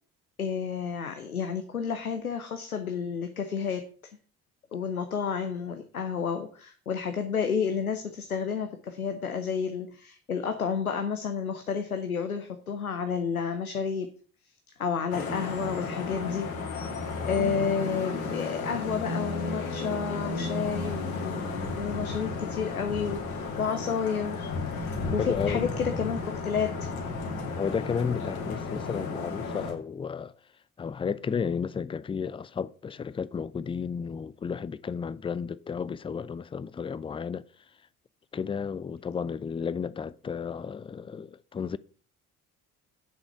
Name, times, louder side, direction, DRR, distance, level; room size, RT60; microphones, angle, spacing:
voice 1, 0.4-3.9 4.7-14.1 14.8-16.5 16.9-26.7, left 6 dB, 90° left, 0.7 m, -31 dB
Vehicle horn car horn honking / Traffic noise roadway noise, 15.1-29.7, left 3 dB, 75° left, 2.2 m, -33 dB
voice 2, 25.2-25.7 27.6-30.3 30.8-37.5 38.3-41.8, left 6 dB, 15° left, 0.4 m, -33 dB
8.2 x 6.3 x 5.7 m
figure-of-eight pair, 50°, 42 cm